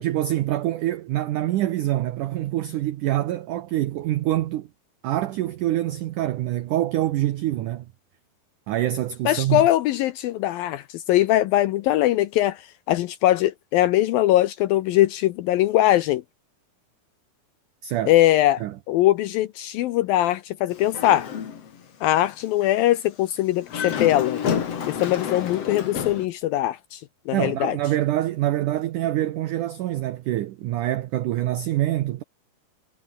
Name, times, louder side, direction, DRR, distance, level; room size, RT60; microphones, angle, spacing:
voice 1, 0.0-4.7 5.0-7.9 8.7-9.7 17.8-18.1 18.6-18.7 27.3-32.2, right 14 dB, 80° right, 1.8 m, -25 dB
voice 2, 9.3-16.2 18.1-21.3 22.0-24.4 24.9-27.0 27.3-27.8, left 14 dB, 80° left, 2.2 m, -21 dB
Dog, 20.7-21.8 22.2-22.3 23.6-26.3, left 7 dB, 45° left, 2.6 m, -29 dB
omnidirectional pair, 4.9 m